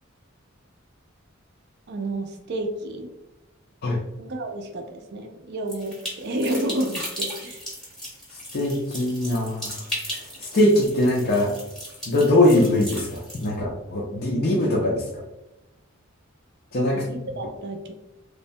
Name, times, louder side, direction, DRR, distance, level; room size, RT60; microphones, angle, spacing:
voice 1, 1.9-3.1 4.2-7.6 16.9-17.9, right 1 dB, 50° right, 4 dB, 0.4 m, -30 dB
sound 1, 5.7-13.5, equal, ahead, 0.8 m, -36 dB
voice 2, 8.5-9.7 10.5-11.5 12.1-15.0 16.7-17.0, left 1 dB, 50° left, -3 dB, 0.4 m, -21 dB
3.1 x 2.2 x 2.6 m, 0.95 s
head